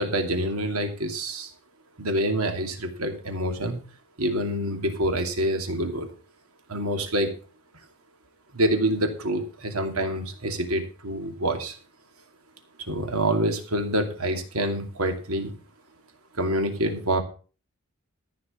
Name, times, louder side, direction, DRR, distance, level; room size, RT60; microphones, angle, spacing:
voice 1, 0.0-1.5 2.0-3.8 4.2-6.1 6.7-7.3 8.5-11.7 12.9-15.5 16.4-17.2, right 1 dB, 75° right, 5 dB, 2.6 m, -26 dB
14.0 x 6.3 x 6.8 m, 0.37 s
head